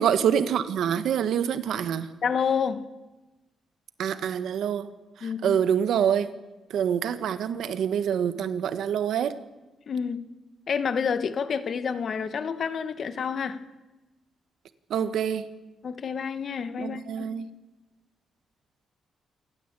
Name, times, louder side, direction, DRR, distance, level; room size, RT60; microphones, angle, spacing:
voice 1, 0.0-2.1 4.0-4.9 5.4-6.3 6.7-9.3 14.9-15.4 16.8-17.4, right 8 dB, 80° right, 1.4 m, -26 dB
voice 2, 2.2-2.8 5.2-5.6 9.9-10.2 10.7-13.6 15.8-17.3, left 6 dB, 55° left, 1.5 m, -29 dB
28.0 x 14.0 x 8.3 m
cardioid pair, 110°, 0 cm